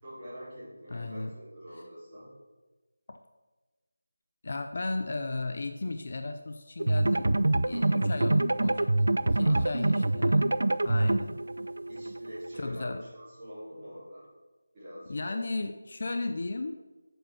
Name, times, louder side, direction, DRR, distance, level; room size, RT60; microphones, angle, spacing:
voice 1, 0.0-2.3 7.7-8.1 9.4-10.0 10.8-11.1 11.9-14.2 14.7-15.4 16.1-16.3, equal, 15° right, -12 dB, 3.5 m, -45 dB
voice 2, 0.9-1.3 3.1-3.2 4.4-7.4 7.6-8.9 9.2-10.5 10.9-11.3 12.6-13.0 15.1-16.7, left 2 dB, 40° left, 7 dB, 0.5 m, -35 dB
sound 1, 6.8-12.6, right 2 dB, 75° right, 0.4 m, -26 dB
7.9 x 6.3 x 6.1 m, 1.2 s
figure-of-eight pair, 175°, 0 cm